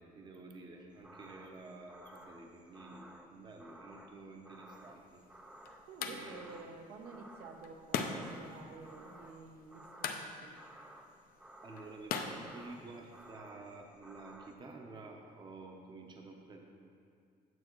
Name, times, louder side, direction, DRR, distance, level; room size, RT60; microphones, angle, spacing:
voice 1, 0.0-5.2 6.0-6.4 11.6-16.6, right 3 dB, 30° right, 2 dB, 0.7 m, -51 dB
sound 1, 0.9-14.5, right 1 dB, 5° right, 0.3 m, -56 dB
sound 2, 4.8-13.3, left 6 dB, 70° left, 0.6 m, -43 dB
voice 2, 5.9-10.5, right 4 dB, 85° right, 3 dB, 0.8 m, -51 dB
9.1 x 7.3 x 3.0 m, 2.3 s
cardioid pair, 155°, 16 cm